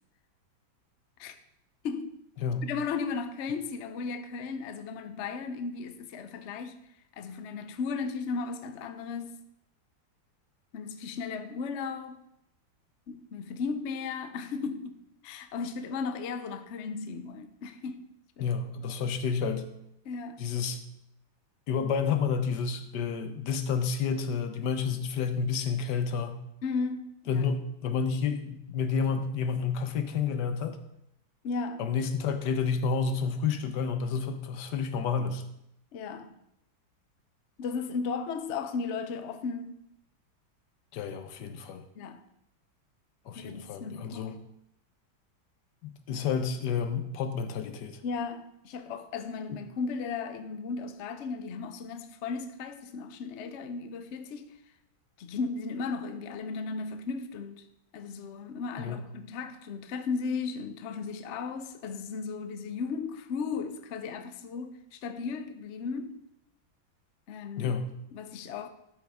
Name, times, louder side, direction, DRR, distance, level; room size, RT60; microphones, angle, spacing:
voice 1, 1.8-2.2 2.6-6.8 7.2-9.3 10.7-12.2 13.1-15.0 15.2-18.0 18.4-18.5 20.0-20.4 26.6-27.5 31.4-31.8 35.9-36.3 37.6-39.8 41.9-42.2 43.3-44.3 48.0-54.5 55.2-57.6 57.9-66.2 67.3-67.7 68.1-68.7, left 5 dB, 85° left, 0.6 m, -35 dB
voice 2, 18.4-19.7 20.4-20.8 21.7-26.4 27.3-30.8 31.8-35.4 40.9-41.8 43.3-44.4 45.8-48.0 58.8-59.1 67.6-67.9, left 6 dB, 65° left, 1.3 m, -30 dB
12.5 x 6.5 x 3.6 m
omnidirectional pair, 2.2 m